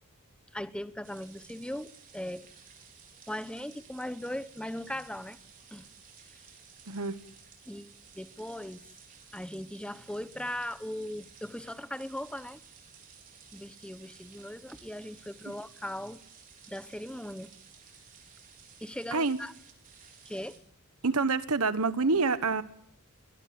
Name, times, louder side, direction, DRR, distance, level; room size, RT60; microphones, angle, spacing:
voice 1, 0.5-2.5 3.3-5.4 5.7-5.9 7.7-8.9 9.3-12.6 13.5-16.2 16.7-17.5 18.8-19.5 20.2-20.6, left 1 dB, 5° left, 0.9 m, -39 dB
sound 1, 1.0-20.6, right 7 dB, 40° right, 5.0 m, -55 dB
voice 2, 6.9-7.2 19.1-19.4 21.0-22.6, right 4 dB, 75° right, 1.3 m, -27 dB
23.0 x 20.0 x 7.7 m
head